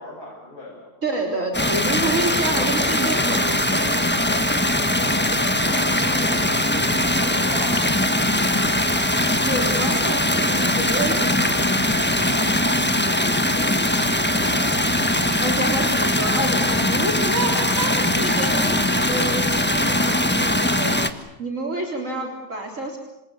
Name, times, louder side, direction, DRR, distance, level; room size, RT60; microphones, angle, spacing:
voice 1, 0.0-0.9 5.3-8.0 13.0-15.2 21.9-22.3, left 1 dB, 80° left, -6 dB, 7.7 m, -38 dB
voice 2, 1.0-3.9 9.5-11.6 15.4-21.0 21.4-23.0, right 2 dB, 55° right, 1 dB, 4.0 m, -28 dB
sound 1, 1.5-21.1, left 1 dB, 5° left, 1.3 m, -21 dB
28.0 x 27.0 x 7.0 m, 0.92 s
omnidirectional pair, 1.6 m